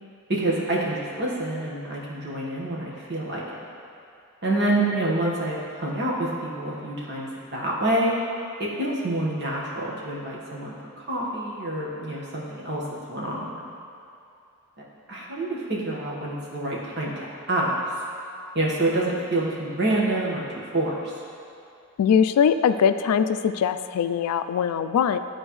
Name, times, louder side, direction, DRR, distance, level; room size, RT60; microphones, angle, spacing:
voice 1, 0.3-3.4 4.4-8.1 8.6-12.8 13.1-13.6 15.1-17.7 18.5-21.1, right 1 dB, 50° right, -5 dB, 1.4 m, -27 dB
voice 2, 22.0-25.2, left 7 dB, 90° left, 11 dB, 0.3 m, -21 dB
12.0 x 4.3 x 3.1 m, 2.6 s
head